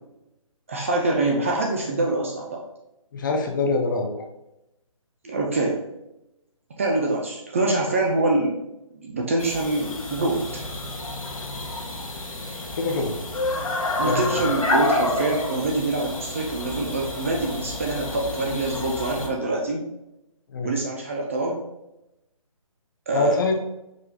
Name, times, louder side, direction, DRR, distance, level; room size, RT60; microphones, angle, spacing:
voice 1, 0.7-2.6 5.2-5.8 6.8-8.6 9.0-10.6 14.0-19.8 20.6-21.6 23.1-23.4, right 2 dB, 25° right, 0 dB, 0.4 m, -25 dB
voice 2, 3.1-4.3 12.8-13.2 14.0-14.5 20.5-20.7 23.1-23.6, left 3 dB, 35° left, 3 dB, 0.6 m, -24 dB
sound 1, 9.4-19.3, left 2 dB, 70° left, 1.4 m, -29 dB
4.9 x 3.3 x 2.3 m, 0.89 s
figure-of-eight pair, 145°, 18 cm